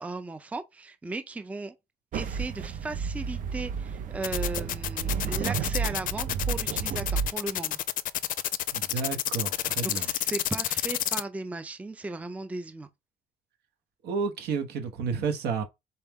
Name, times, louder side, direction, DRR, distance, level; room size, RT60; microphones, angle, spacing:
voice 1, 0.0-1.8 2.1-7.8 8.9-9.0 9.8-12.9, right 3 dB, 10° right, 0.4 m, -36 dB
sound 1, 2.1-7.3, right 6 dB, 50° right, 0.6 m, -31 dB
sound 2, 4.2-11.2, left 12 dB, 55° left, 0.4 m, -29 dB
voice 2, 8.7-10.1 14.0-15.6, right 5 dB, 75° right, 1.1 m, -31 dB
4.3 x 3.4 x 3.5 m
cardioid pair, 110°, 17 cm